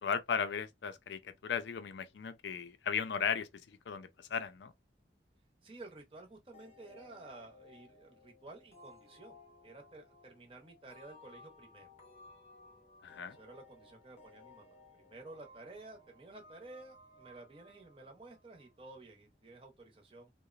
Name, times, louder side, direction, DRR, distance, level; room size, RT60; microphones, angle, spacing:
voice 1, 0.0-4.7 13.0-13.4, left 6 dB, 80° left, 0.4 m, -36 dB
voice 2, 5.6-11.9 13.2-20.3, right 2 dB, 30° right, 0.6 m, -53 dB
sound 1, 6.5-18.9, left 2 dB, 35° left, 0.7 m, -59 dB
2.8 x 2.0 x 2.4 m
head